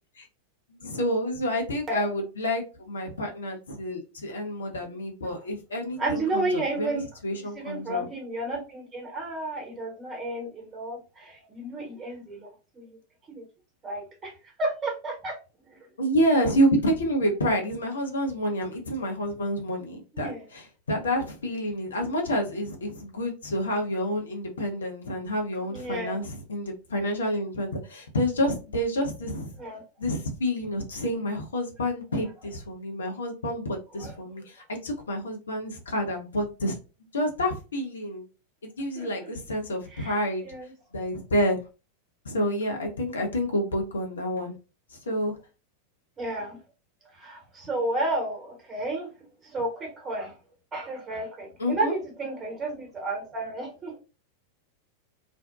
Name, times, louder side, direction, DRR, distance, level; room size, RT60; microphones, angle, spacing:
voice 1, 0.7-8.1 16.0-29.5 30.0-36.8 37.1-38.3 38.6-40.5 40.9-41.6 42.2-44.5 45.1-45.3 51.6-51.9, equal, 70° left, 2 dB, 0.6 m, -28 dB
voice 2, 6.0-7.0 7.5-13.0 13.3-13.4 13.8-15.4 15.7-15.8 20.1-20.4 25.7-26.1 29.6-29.8 34.0-34.1 38.9-39.3 39.9-40.2 40.4-40.7 46.2-46.6 47.1-49.1 49.4-50.4 50.7-54.0, right 2 dB, 25° right, 0 dB, 1.0 m, -32 dB
2.5 x 2.1 x 2.3 m, 0.32 s
figure-of-eight pair, 90°, 0 cm